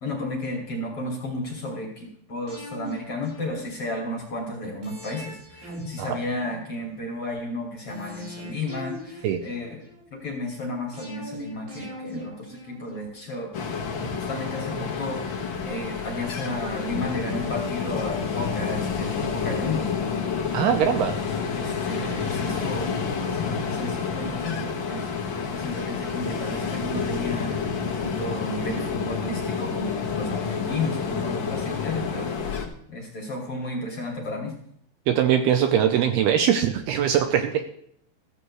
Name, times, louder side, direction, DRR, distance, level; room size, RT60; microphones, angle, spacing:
voice 1, 0.0-9.8 10.1-13.5 14.1-19.9 21.5-22.9 23.3-25.1 25.5-32.3 32.9-34.5, left 2 dB, 40° left, 0 dB, 2.7 m, -33 dB
sound 1, 2.5-4.0 4.8-7.0 7.9-10.1 10.9-13.3 14.0-15.6 15.9-16.0, equal, 60° right, 8.1 m, -41 dB
Ocean, 13.5-32.7, left 5 dB, 90° left, 1.0 m, -29 dB
voice 2, 20.5-21.2 35.1-37.6, right 9 dB, 75° right, 7 dB, 2.5 m, -21 dB
15.0 x 14.5 x 3.2 m, 0.69 s
omnidirectional pair, 5.1 m